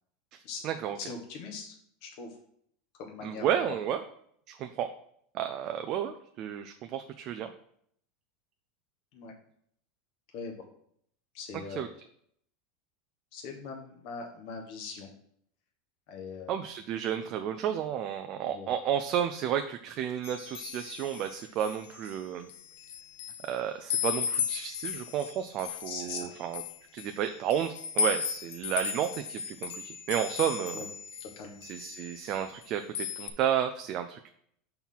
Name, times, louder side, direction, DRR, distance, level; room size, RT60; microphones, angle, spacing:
voice 1, 0.3-1.0 3.2-4.0 4.5-4.9 5.3-7.5 11.8-11.9 16.5-22.5 23.4-26.6 26.9-30.8 31.6-34.3, right 9 dB, 45° right, 6 dB, 0.5 m, -32 dB
voice 2, 1.0-1.7 2.0-2.4 2.9-3.8 9.1-9.3 10.3-10.7 11.3-11.9 13.3-15.1 16.1-16.5 18.5-18.7 25.8-26.3 30.7-30.9 31.2-31.6, left 5 dB, 55° left, 1 dB, 1.4 m, -41 dB
sound 1, 20.2-22.1 22.5-23.5 23.9-31.3 31.6-32.6 32.9-33.3, left 7 dB, 80° left, 0.7 m, -35 dB
5.6 x 4.5 x 5.7 m, 0.66 s
supercardioid pair, 140°, 0 cm